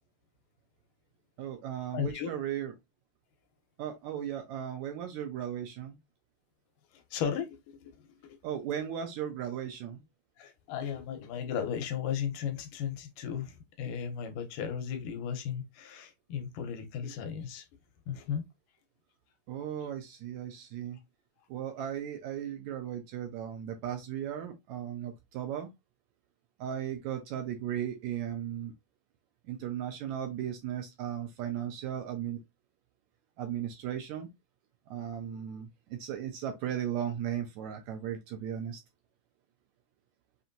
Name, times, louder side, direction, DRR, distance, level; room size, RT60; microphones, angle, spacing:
voice 1, 1.4-2.7 3.8-6.0 8.4-10.0 19.5-21.0 21.5-25.7 26.6-28.7 29.5-32.4 33.4-34.3 34.9-38.8, right 10 dB, 80° right, 1.8 m, -36 dB
voice 2, 1.9-2.3 6.9-8.2 10.4-17.7 18.1-18.4, left 8 dB, 80° left, 2.4 m, -35 dB
5.8 x 2.7 x 2.6 m
omnidirectional pair, 3.7 m